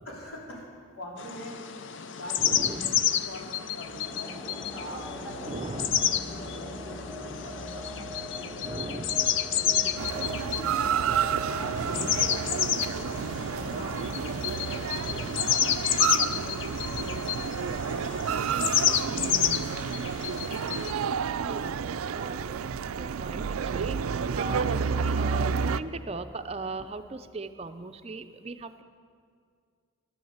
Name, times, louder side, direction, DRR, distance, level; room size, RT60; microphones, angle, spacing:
voice 1, 0.0-1.6 2.1-4.3 4.7-5.8 6.3-11.1 11.4-12.4 13.5-20.0, left 1 dB, 85° left, -3 dB, 3.9 m, -44 dB
sound 1, 1.2-20.9, left 9 dB, 60° left, 0.5 m, -30 dB
voice 2, 2.4-3.1 5.5-6.2 8.6-9.3 11.7-12.2 14.9-15.8 21.3-28.8, right 3 dB, 30° right, 9 dB, 0.5 m, -39 dB
sound 2, 3.8-16.4, equal, 10° left, 1.7 m, -43 dB
sound 3, 10.0-25.8, right 6 dB, 80° right, 0.4 m, -30 dB
13.5 x 11.5 x 7.9 m, 2.2 s
head